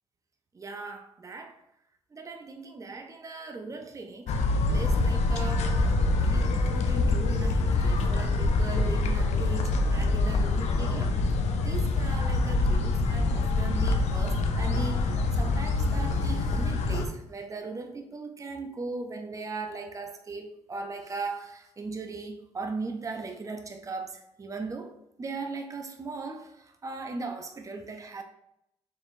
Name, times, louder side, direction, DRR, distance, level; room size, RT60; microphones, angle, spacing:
voice 1, 0.5-1.6 2.1-5.7 6.2-11.1 11.6-24.9 25.2-28.2, right 3 dB, 25° right, 5 dB, 0.6 m, -38 dB
sound 1, 4.3-17.1, left 3 dB, 65° left, 0.5 m, -25 dB
4.6 x 3.4 x 2.6 m, 0.77 s
supercardioid pair, 60°, 12 cm